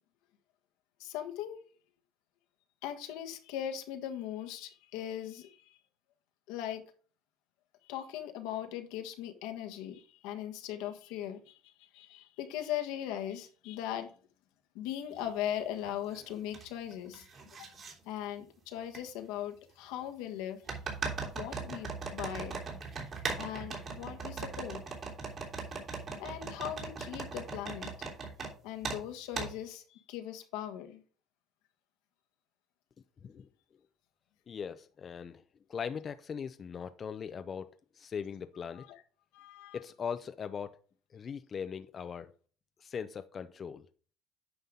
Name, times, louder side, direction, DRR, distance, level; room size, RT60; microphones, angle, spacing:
voice 1, 1.0-1.6 2.8-5.8 6.5-6.8 7.8-14.1 14.7-17.3 17.6-17.7 18.0-20.6 21.3-22.6 23.4-24.8 26.2-27.9 28.6-31.0 38.8-39.0 39.3-39.8, left 11 dB, 85° left, 1.4 m, -39 dB
sound 1, 15.2-15.3 15.8-16.7 16.9-17.9 18.9-19.0 20.7-28.5 28.8-29.0 29.4-29.5, right 4 dB, 40° right, 3.1 m, -39 dB
voice 2, 34.5-35.4 35.7-38.9 39.7-40.8 41.1-42.3 42.8-43.9, left 7 dB, 35° left, 0.5 m, -40 dB
9.4 x 5.6 x 3.7 m
cardioid pair, 110°, 0 cm